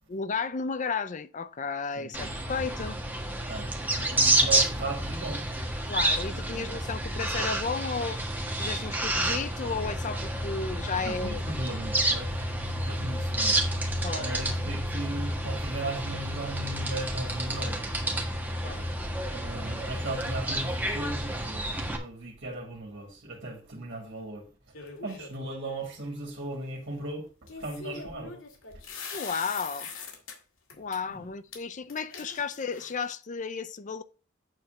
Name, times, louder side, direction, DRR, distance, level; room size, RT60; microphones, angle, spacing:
voice 1, 0.1-3.0 5.9-8.2 8.6-11.4 14.0-14.3 18.6-18.9 29.1-29.9 30.8-34.0, left 5 dB, 40° left, 0.5 m, -33 dB
voice 2, 2.0-2.3 3.5-5.4 6.5-6.6 11.0-12.5 12.7-13.6 14.0-18.2 19.3-24.5 25.0-27.3 27.6-28.4 31.2-31.3, right 2 dB, 50° right, 2.3 m, -37 dB
sound 1, 2.1-22.0, right 1 dB, 10° right, 1.5 m, -30 dB
sound 2, 24.7-25.5 27.5-30.3 30.7-31.0 31.5-31.6 31.9-33.1, left 5 dB, 70° left, 2.4 m, -42 dB
9.0 x 4.2 x 6.5 m
head